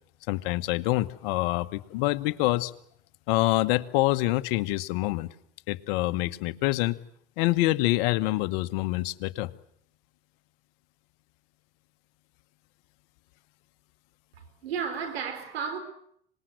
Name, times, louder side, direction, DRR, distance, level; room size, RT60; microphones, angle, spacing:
voice 1, 0.3-2.7 3.3-5.3 5.7-7.0 7.4-9.5, left 18 dB, 65° left, 1.2 m, -26 dB
voice 2, 14.4-15.8, right 6 dB, 90° right, 4.2 m, -33 dB
25.5 x 20.5 x 7.8 m
hypercardioid pair, 90°, 30 cm